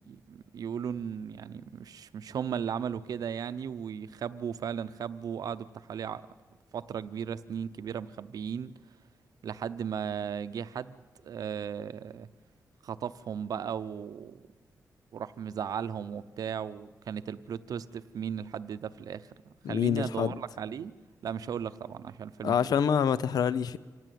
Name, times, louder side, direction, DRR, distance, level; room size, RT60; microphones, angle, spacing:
voice 1, 0.0-6.3 6.7-8.7 9.4-12.3 12.8-14.5 15.1-20.9 21.2-22.7, right 7 dB, 70° right, 0.7 m, -36 dB
voice 2, 19.6-20.4 22.4-23.8, left 8 dB, 85° left, 0.6 m, -26 dB
25.0 x 17.0 x 9.3 m
wide cardioid pair, 170°, 7 cm